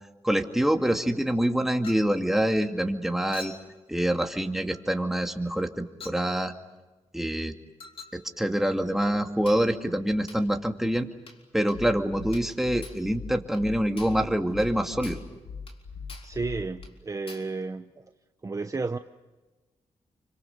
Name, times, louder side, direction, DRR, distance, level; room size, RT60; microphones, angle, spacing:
voice 1, 0.2-3.5 3.9-6.5 7.1-7.6 8.1-11.1 11.5-15.2, right 1 dB, 5° right, 4 dB, 2.4 m, -26 dB
Chink clink, 1.8-2.2 3.3-3.7 4.7-4.9 6.0-6.3 7.8-8.2 9.5-9.7 10.3-10.5 11.3-11.4 11.7-11.8 12.3-12.6 12.8-13.1 13.5-13.7 14.0-14.3 14.6-14.7 15.0-15.3 15.7-15.8 16.1-16.4 16.8-16.9 17.3-17.5, left 4 dB, 50° left, 4.0 m, -46 dB
sound 1, 11.7-16.9, left 5 dB, 90° left, 1.2 m, -40 dB
voice 2, 16.2-18.0 18.4-19.0, right 3 dB, 30° right, 8 dB, 0.9 m, -32 dB
28.5 x 25.5 x 6.7 m, 1.2 s
cardioid pair, 80°, 12 cm